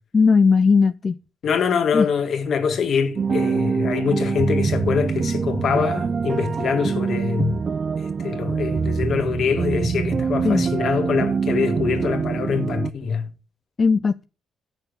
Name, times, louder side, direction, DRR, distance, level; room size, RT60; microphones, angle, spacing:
voice 1, 0.1-1.2 1.9-2.1 10.4-10.6 13.8-14.2, left 5 dB, 35° left, 0.5 m, -17 dB
voice 2, 1.4-7.6 8.0-13.3, left 6 dB, 60° left, 1.8 m, -24 dB
sound 1, 3.2-12.9, right 5 dB, 40° right, 0.4 m, -24 dB
8.9 x 6.2 x 5.3 m
cardioid pair, 90°, 0 cm